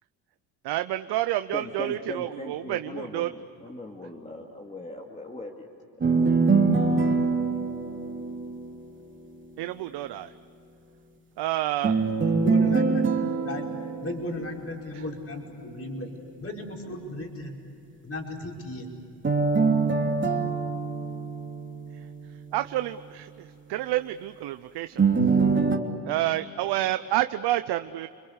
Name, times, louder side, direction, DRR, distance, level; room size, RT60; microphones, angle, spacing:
voice 1, 0.6-3.3 9.6-10.3 11.4-12.0 14.9-15.0 22.5-24.9 26.0-28.1, right 14 dB, 70° right, 10 dB, 0.8 m, -29 dB
voice 2, 1.5-5.7 6.1-6.4, left 2 dB, 15° left, 1 dB, 2.5 m, -39 dB
sound 1, 6.0-9.1 11.8-15.1 19.2-22.3 25.0-25.8, right 4 dB, 30° right, 3.0 m, -24 dB
voice 3, 12.0-13.0 13.4-13.7 14.0-16.1 16.4-17.6 18.0-18.9, left 1 dB, 35° left, 0 dB, 5.4 m, -35 dB
30.0 x 22.0 x 8.2 m, 2.6 s
cardioid pair, 90°, 42 cm